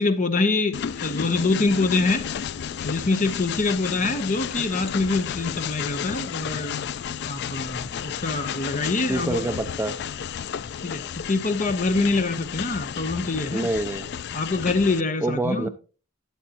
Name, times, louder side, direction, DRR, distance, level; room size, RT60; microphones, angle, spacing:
voice 1, 0.0-2.3 2.8-6.8 7.2-9.5 10.8-13.7 14.3-15.7, left 3 dB, 35° left, 1.0 m, -25 dB
Train, 0.7-15.0, left 8 dB, 50° left, 0.3 m, -32 dB
voice 2, 9.1-9.9 13.5-14.1 15.2-15.7, right 2 dB, 10° right, 0.5 m, -26 dB
12.5 x 7.8 x 2.9 m
head